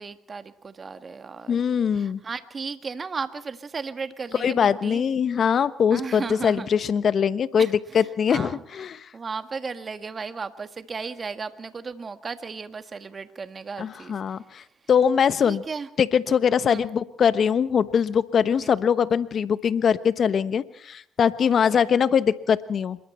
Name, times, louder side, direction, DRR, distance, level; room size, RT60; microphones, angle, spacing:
voice 1, 0.0-1.6 1.9-5.1 5.9-6.7 7.6-8.6 9.1-14.4 15.4-15.9 16.6-16.9 18.6-18.7 21.5-21.9, right 5 dB, 40° right, 9 dB, 1.7 m, -35 dB
voice 2, 1.5-2.2 4.4-9.1 13.8-14.6 14.9-15.6 16.0-23.0, left 7 dB, 55° left, 14 dB, 1.2 m, -22 dB
26.5 x 22.0 x 4.5 m, 0.68 s
hypercardioid pair, 60°, 0 cm